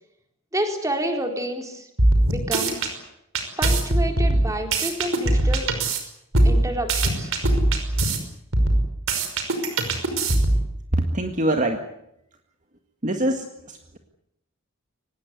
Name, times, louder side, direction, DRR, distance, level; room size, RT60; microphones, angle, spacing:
voice 1, 0.5-1.9 2.3-2.8 3.6-5.7 6.4-7.3, right 1 dB, 15° right, 4 dB, 4.2 m, -29 dB
sound 1, 2.0-2.9 3.3-6.0 6.3-8.2 8.5-10.7, right 1 dB, 70° right, 5.7 m, -20 dB
voice 2, 11.0-11.8 13.0-14.0, right 1 dB, 35° right, 5 dB, 1.9 m, -24 dB
24.0 x 20.0 x 9.7 m, 0.79 s
head